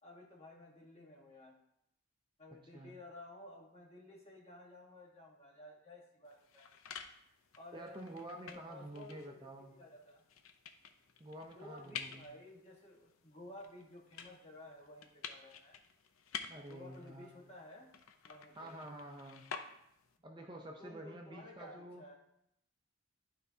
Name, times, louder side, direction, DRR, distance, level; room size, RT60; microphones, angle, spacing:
voice 1, 0.0-1.6 2.4-6.7 7.6-8.1 8.5-10.2 11.5-15.8 16.6-17.9 18.2-18.8 20.8-22.1, left 1 dB, 30° left, -2 dB, 1.4 m, -54 dB
sound 1, 6.3-20.2, left 7 dB, 75° left, 0.6 m, -51 dB
voice 2, 7.7-9.7 11.2-12.3 16.5-17.3 18.6-19.5 20.2-22.1, right 1 dB, 20° right, 1 dB, 0.5 m, -49 dB
11.5 x 4.4 x 2.8 m, 0.76 s
head